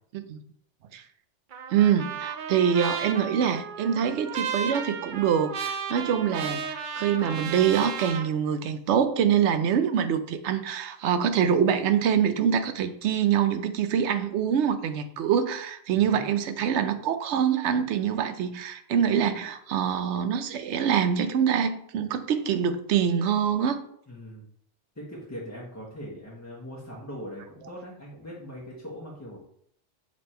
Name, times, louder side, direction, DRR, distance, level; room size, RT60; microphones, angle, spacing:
Trumpet, 1.5-8.3, right 6 dB, 55° right, 0.6 m, -34 dB
voice 1, 1.7-23.8, right 8 dB, 80° right, 9 dB, 0.9 m, -25 dB
voice 2, 15.9-16.3 24.1-24.5 24.9-29.4, equal, 15° left, -5 dB, 1.0 m, -41 dB
6.5 x 3.5 x 4.3 m, 0.68 s
omnidirectional pair, 1.2 m